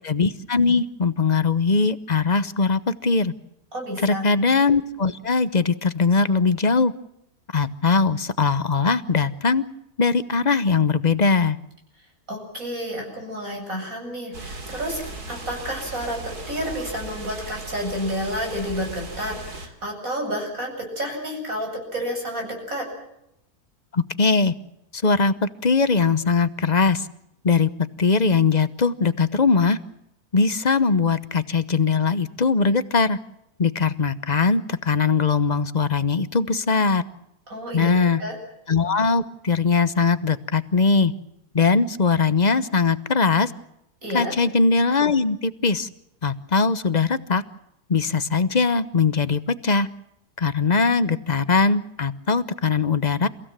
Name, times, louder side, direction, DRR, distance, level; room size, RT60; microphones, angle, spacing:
voice 1, 0.0-3.3 4.0-6.9 7.5-9.6 10.0-11.6 23.9-24.5 24.9-27.1 27.4-27.7 28.0-29.8 30.3-33.2 33.6-37.0 37.7-38.2 38.7-41.1 41.5-43.5 44.1-45.9 46.2-47.4 47.9-49.9 50.4-53.3, left 4 dB, 35° left, 13 dB, 0.9 m, -20 dB
voice 2, 3.7-4.3 12.3-16.2 16.5-22.8 37.5-38.4 44.0-44.3, equal, 60° right, 1 dB, 8.6 m, -30 dB
sound 1, 14.3-19.7, right 2 dB, 85° right, 3.4 m, -37 dB
29.5 x 16.5 x 7.5 m, 0.81 s
omnidirectional pair, 1.6 m